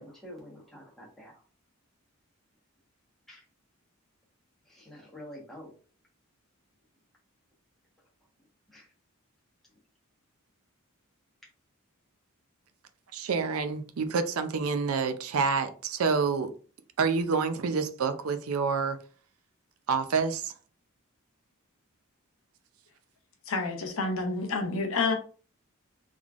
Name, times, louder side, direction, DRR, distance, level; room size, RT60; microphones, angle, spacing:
voice 1, 0.0-1.3 3.3-3.4 4.7-5.7 8.7-8.9, left 1 dB, ahead, 1.2 m, -47 dB
voice 2, 13.1-16.5 17.0-19.0 19.9-20.5, right 5 dB, 80° right, 0.5 m, -28 dB
voice 3, 23.5-25.1, left 3 dB, 70° left, 0.8 m, -29 dB
3.6 x 3.2 x 2.4 m
head